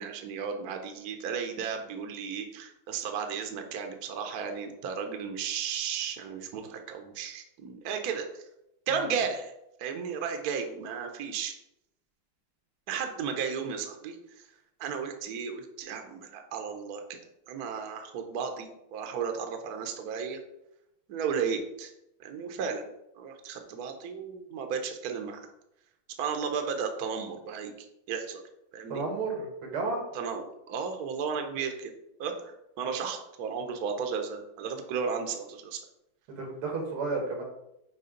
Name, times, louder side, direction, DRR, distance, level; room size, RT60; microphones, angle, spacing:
voice 1, 0.0-8.4 8.9-9.5 9.8-11.5 12.9-14.5 14.8-17.2 17.5-20.4 21.1-21.9 22.2-22.8 23.2-25.5 26.2-27.7 28.1-28.4 28.7-29.0 30.1-31.9 32.2-35.8, right 6 dB, 55° right, 5 dB, 1.2 m, -34 dB
voice 2, 28.9-30.0 36.3-37.4, right 3 dB, 90° right, 2 dB, 2.7 m, -32 dB
6.8 x 4.9 x 5.1 m, 0.84 s
omnidirectional pair, 2.3 m